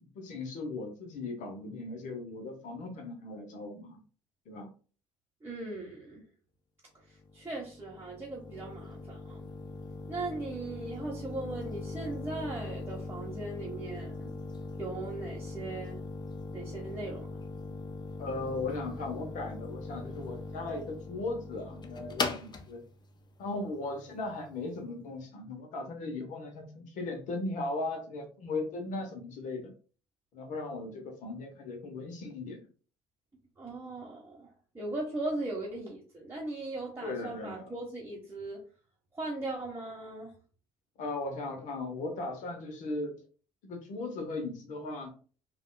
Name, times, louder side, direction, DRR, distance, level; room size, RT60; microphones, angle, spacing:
voice 1, 0.0-4.0 4.5-4.7 18.2-22.8 23.4-29.7 30.3-32.7 37.0-37.7 41.0-43.2 43.6-45.1, left 2 dB, 55° left, 4 dB, 0.9 m, -37 dB
voice 2, 5.4-6.2 7.3-9.4 10.1-14.3 14.8-16.0 16.5-17.4 33.6-34.5 34.7-38.6 39.1-40.3, right 2 dB, 15° right, -3 dB, 0.9 m, -38 dB
sound 1, 7.1-24.7, left 3 dB, 30° left, 0.6 m, -40 dB
3.4 x 2.4 x 2.3 m, 0.39 s
hypercardioid pair, 55°, 15 cm